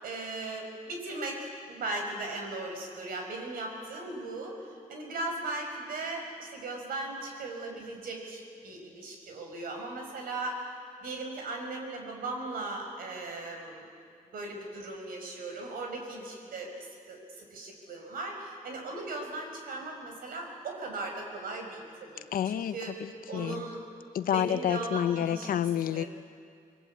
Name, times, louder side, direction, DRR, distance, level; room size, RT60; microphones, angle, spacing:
voice 1, 0.0-10.7 11.0-13.9 14.3-22.9 23.3-23.8 24.2-25.5 25.9-26.1, right 2 dB, 85° right, 2 dB, 5.4 m, -38 dB
voice 2, 22.3-23.7 24.1-26.0, left 10 dB, 75° left, 13 dB, 0.8 m, -29 dB
27.0 x 21.0 x 8.4 m, 2.2 s
cardioid pair, 125°, 15 cm